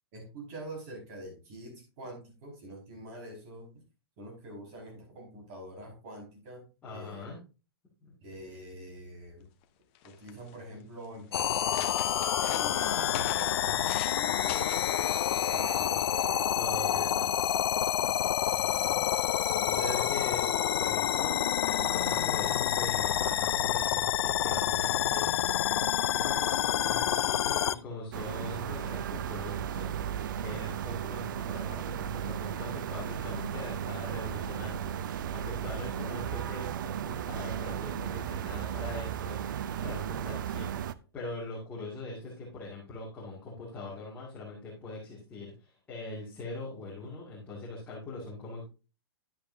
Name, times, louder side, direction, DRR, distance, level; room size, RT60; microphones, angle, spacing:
voice 1, 0.1-3.7 4.2-7.3 8.2-9.5 10.0-14.6 15.3-16.1 16.7-17.0 18.0-18.1 19.5-20.0, right 1 dB, 35° right, -1 dB, 5.1 m, -45 dB
voice 2, 6.8-7.4 8.0-8.2 16.6-17.6 18.5-19.0 19.6-25.3 26.1-39.4 39.8-40.7 41.1-48.7, left 2 dB, 10° left, -6 dB, 2.2 m, -42 dB
sound 1, 9.6-9.7 9.9-10.5 11.1-11.2 11.5-14.2 14.5-14.9 15.7-15.9, left 11 dB, 30° left, 0.9 m, -42 dB
sound 2, 11.3-27.7, left 10 dB, 75° left, 0.6 m, -28 dB
sound 3, 28.1-40.9, right 9 dB, 50° right, 0.5 m, -35 dB
10.5 x 8.3 x 2.7 m, 0.32 s
hypercardioid pair, 165°, 13 cm